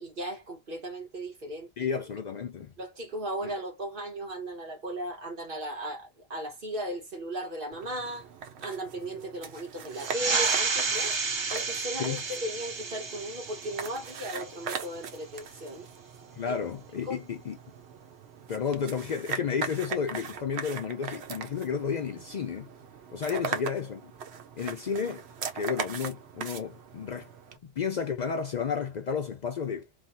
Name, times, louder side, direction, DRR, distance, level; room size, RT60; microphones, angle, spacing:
voice 1, 0.0-1.7 2.8-8.3 8.6-11.1 11.5-15.9 16.5-16.6 17.1-17.2 23.3-23.6, right 1 dB, 55° right, 1.5 m, -36 dB
voice 2, 1.8-2.7 3.4-3.5 12.0-12.2 16.4-17.6 18.5-22.7 23.1-24.1 24.6-25.3 25.5-27.3 27.6-29.9, left 6 dB, 55° left, 0.5 m, -32 dB
sound 1, 7.7-27.6, right 6 dB, 85° right, 1.0 m, -40 dB
sound 2, 9.9-15.0, right 4 dB, 40° right, 0.4 m, -31 dB
3.3 x 2.2 x 2.6 m
omnidirectional pair, 1.1 m